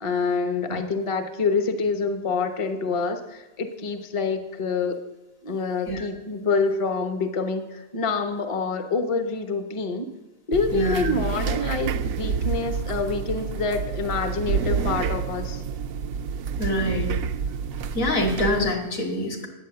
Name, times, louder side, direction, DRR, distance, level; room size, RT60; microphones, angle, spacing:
voice 1, 0.0-5.0 5.4-10.1 10.5-15.6, left 4 dB, 25° left, 7 dB, 0.9 m, -26 dB
sound 1, 10.5-18.7, right 6 dB, 70° right, 1.0 m, -28 dB
voice 2, 10.7-11.2 16.6-17.1 17.9-19.5, left 1 dB, 60° left, 2 dB, 2.5 m, -25 dB
11.0 x 8.9 x 7.7 m, 1.0 s
omnidirectional pair, 1.5 m